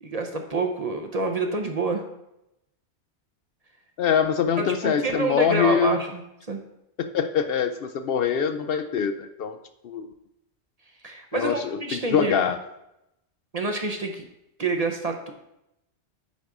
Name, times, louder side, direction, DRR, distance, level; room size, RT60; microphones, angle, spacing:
voice 1, 0.0-2.0 4.6-6.2 6.5-6.6 11.0-12.3 13.5-14.2 14.6-15.3, right 3 dB, 40° right, 4 dB, 0.7 m, -27 dB
voice 2, 4.0-6.0 7.0-9.6 9.8-10.1 11.3-12.6, left 7 dB, 65° left, 8 dB, 0.7 m, -24 dB
9.3 x 3.9 x 4.8 m, 0.86 s
omnidirectional pair, 1.1 m